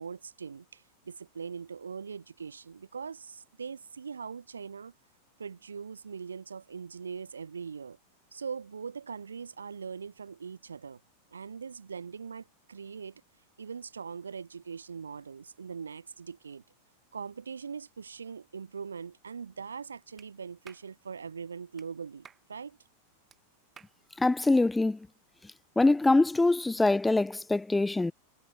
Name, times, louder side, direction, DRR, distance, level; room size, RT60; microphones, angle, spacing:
voice 1, 0.0-4.9 5.4-8.0 8.3-11.0 11.3-13.2 13.6-16.6 17.1-22.8, right 6 dB, 75° right, 1.9 m, -41 dB
Clapping, 20.2-20.3 20.6-20.9 21.8-21.9 22.2-22.5 23.3-23.4 23.8-24.0, right 7 dB, 20° right, 2.2 m, -53 dB
voice 2, 24.2-25.0 25.8-28.1, left 2 dB, 5° left, 0.3 m, -24 dB
figure-of-eight pair, 90°, 0 cm